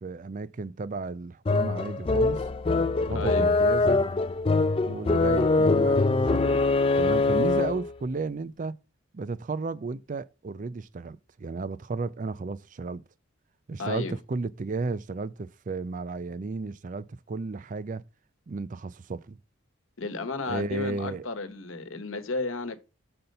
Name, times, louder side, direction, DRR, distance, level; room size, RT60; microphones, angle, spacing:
voice 1, 0.0-2.4 3.0-4.0 4.8-6.6 6.9-8.8 9.1-13.0 13.7-18.0 18.5-19.4 20.5-21.3, right 3 dB, 40° right, 0.4 m, -33 dB
sound 1, 1.4-7.9, left 3 dB, 25° left, 0.4 m, -23 dB
voice 2, 3.1-3.5 13.8-14.2 20.0-22.8, left 3 dB, 75° left, 1.1 m, -33 dB
6.6 x 4.3 x 5.3 m
head